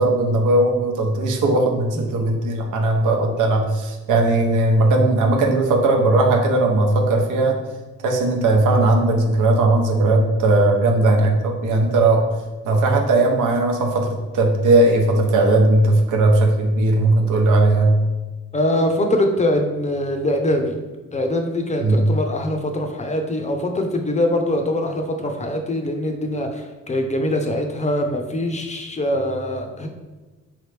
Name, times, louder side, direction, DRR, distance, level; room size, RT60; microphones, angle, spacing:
voice 1, 0.0-7.6 8.0-12.2 12.6-17.9 21.8-22.0, right 2 dB, 85° right, 2 dB, 0.8 m, -18 dB
voice 2, 18.5-20.7 21.1-29.9, left 1 dB, 25° left, 4 dB, 0.5 m, -23 dB
3.7 x 3.2 x 3.3 m, 1.2 s
cardioid pair, 90°, 30 cm